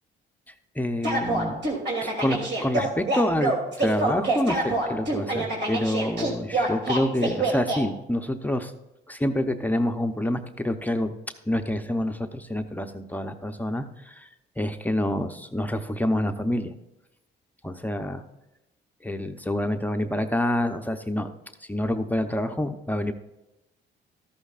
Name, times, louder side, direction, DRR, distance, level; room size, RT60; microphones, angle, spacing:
voice 1, 0.5-1.6 2.0-8.7 9.1-11.1 11.5-14.3 14.6-16.7 17.6-18.2 19.0-21.3 21.7-23.1, left 1 dB, 10° left, 6 dB, 0.7 m, -27 dB
sound 1, 1.0-7.8, right 2 dB, 60° right, 2.9 m, -26 dB
13.5 x 11.5 x 2.5 m, 0.93 s
cardioid pair, 90°, 20 cm